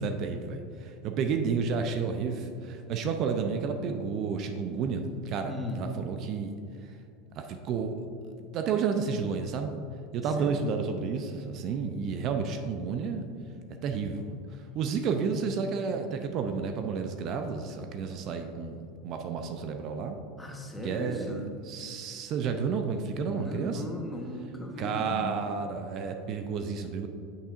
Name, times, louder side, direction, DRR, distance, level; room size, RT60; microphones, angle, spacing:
voice 1, 0.0-6.5 7.4-8.0 8.4-9.7 10.1-13.3 13.8-20.2 20.8-21.3 21.7-23.8 24.8-27.1, right 5 dB, 50° right, 6 dB, 0.5 m, -31 dB
voice 2, 5.5-5.8 10.4-10.5 20.4-21.5 23.3-25.3, left 1 dB, 10° left, 1 dB, 1.2 m, -37 dB
8.1 x 7.2 x 2.6 m, 2.5 s
hypercardioid pair, 100°, 0 cm